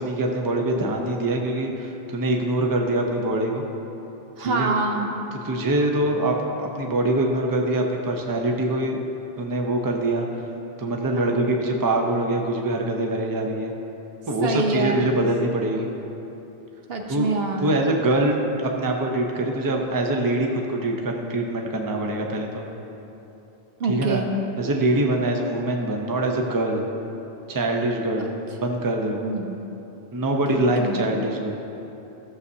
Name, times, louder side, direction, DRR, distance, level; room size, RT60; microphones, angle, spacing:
voice 1, 0.0-3.6 4.4-4.7 5.4-9.0 9.4-10.2 10.8-13.7 14.3-15.9 17.1-17.3 17.6-22.6 23.9-24.2 24.6-26.8 27.5-28.3 28.6-29.3 30.1-31.5, right 1 dB, 25° right, 1 dB, 0.6 m, -24 dB
voice 2, 4.4-5.2 11.1-11.5 14.4-15.1 16.9-17.8 23.8-24.3 28.2-28.4 29.2-29.6 30.5-31.1, right 3 dB, 70° right, 2 dB, 1.0 m, -26 dB
15.0 x 6.9 x 2.7 m, 3.0 s
omnidirectional pair, 1.0 m